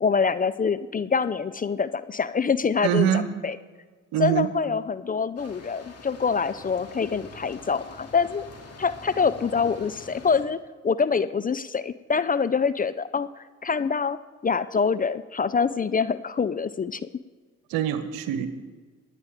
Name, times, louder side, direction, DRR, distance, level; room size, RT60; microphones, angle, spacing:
voice 1, 0.0-3.1 3.4-3.6 4.2-8.4 8.8-10.6 10.8-14.2 14.4-17.0, left 5 dB, 25° left, 14 dB, 0.5 m, -25 dB
voice 2, 2.8-3.3 4.1-4.5 17.7-18.5, right 10 dB, 70° right, 11 dB, 1.1 m, -24 dB
sound 1, 5.4-10.4, left 3 dB, 40° left, 2.5 m, -45 dB
25.0 x 9.6 x 3.6 m, 1.4 s
hypercardioid pair, 45°, 37 cm